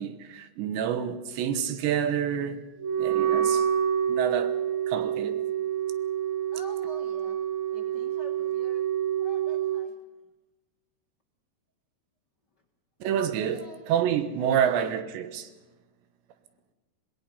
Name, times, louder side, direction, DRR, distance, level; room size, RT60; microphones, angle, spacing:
voice 1, 0.0-2.6 3.0-3.7 4.1-4.6 4.9-5.4 13.0-13.6 13.9-15.5, right 9 dB, 85° right, 3.4 m, -28 dB
Wind instrument woodwind instrument, 2.8-9.9, right 9 dB, 65° right, 2.8 m, -27 dB
voice 2, 6.5-7.4 7.7-8.9 9.2-10.0 13.5-13.8 14.4-14.9, left 2 dB, 80° left, 0.9 m, -47 dB
25.5 x 19.0 x 5.6 m
omnidirectional pair, 5.0 m